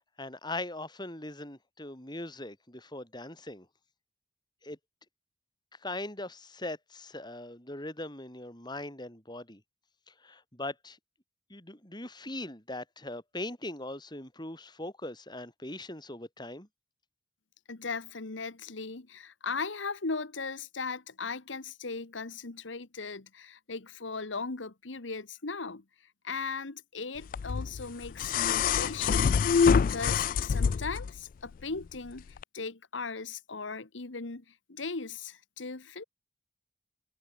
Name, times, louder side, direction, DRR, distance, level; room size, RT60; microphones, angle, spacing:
voice 1, 0.2-3.7 4.6-4.8 5.8-9.6 10.1-11.0 11.5-16.7, left 2 dB, 25° left, 6.4 m, -40 dB
voice 2, 17.7-25.8 26.2-36.0, left 4 dB, 85° left, 1.4 m, -38 dB
sound 1, 27.3-31.1 32.4-32.5, left 6 dB, 45° left, 0.3 m, -26 dB
head